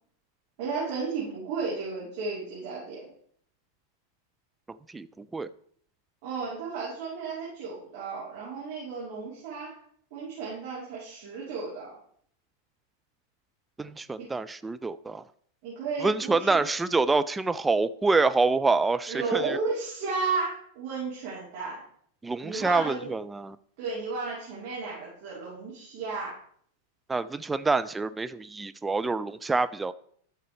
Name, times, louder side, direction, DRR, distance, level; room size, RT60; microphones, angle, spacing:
voice 1, 0.6-3.1 6.2-9.8 10.1-12.0 14.2-14.3 15.6-16.6 19.1-21.8 22.4-23.1 23.8-26.4, right 4 dB, 45° right, 3.5 m, -33 dB
voice 2, 4.7-5.5 13.8-15.2 16.0-19.6 22.2-23.6 27.1-29.9, right 3 dB, 10° right, 0.3 m, -26 dB
12.5 x 6.7 x 3.2 m
figure-of-eight pair, 90°, 0 cm